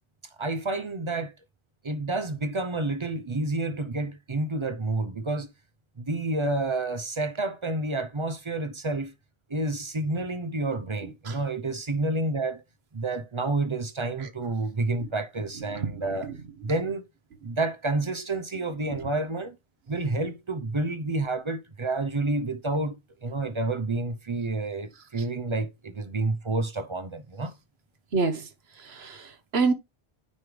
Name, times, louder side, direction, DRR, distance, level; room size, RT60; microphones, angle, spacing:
voice 1, 0.4-1.3 1.8-5.5 6.0-9.1 9.5-12.6 12.9-16.3 16.6-17.0 17.4-19.6 19.9-27.5, right 2 dB, 35° right, 0.6 m, -29 dB
voice 2, 15.7-16.4 18.9-19.0 28.1-28.5 28.7-29.7, right 4 dB, 75° right, 1.3 m, -28 dB
9.5 x 3.2 x 5.0 m
omnidirectional pair, 1.1 m